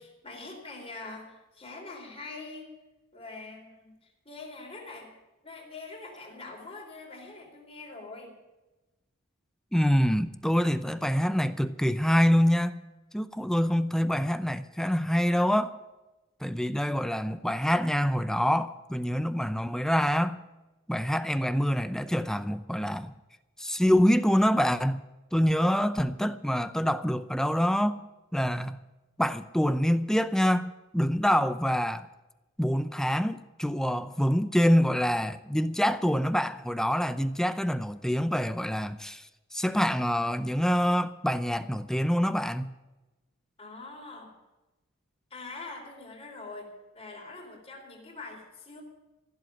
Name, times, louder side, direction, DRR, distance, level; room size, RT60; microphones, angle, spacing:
voice 1, 0.0-2.7 3.1-5.1 5.4-8.4 43.6-44.4 45.3-48.8, left 3 dB, 30° left, 4.0 m, -44 dB
voice 2, 9.7-12.8 13.1-15.8 16.4-20.4 20.9-23.1 23.6-25.0 25.3-28.0 28.3-28.8 29.2-32.1 32.6-39.3 39.5-42.7, equal, 5° left, 0.5 m, -26 dB
15.0 x 8.0 x 9.8 m
head